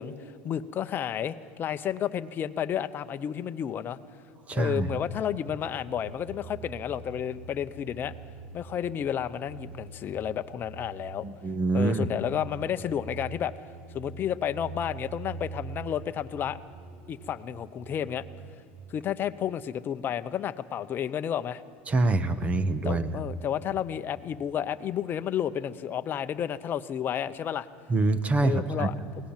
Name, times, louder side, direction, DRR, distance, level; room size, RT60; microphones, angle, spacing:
voice 1, 0.0-4.0 4.5-8.1 8.5-11.2 11.7-13.5 13.9-16.6 17.1-18.2 18.9-21.6 22.8-27.7 28.4-28.9, left 9 dB, 35° left, 10 dB, 0.8 m, -31 dB
voice 2, 4.5-4.9 11.2-12.1 21.9-23.1 27.9-28.9, right 2 dB, 20° right, 13 dB, 1.3 m, -25 dB
sound 1, 5.4-18.8, right 4 dB, 55° right, 2.2 m, -45 dB
23.0 x 17.5 x 7.4 m, 2.5 s
supercardioid pair, 115°, 6 cm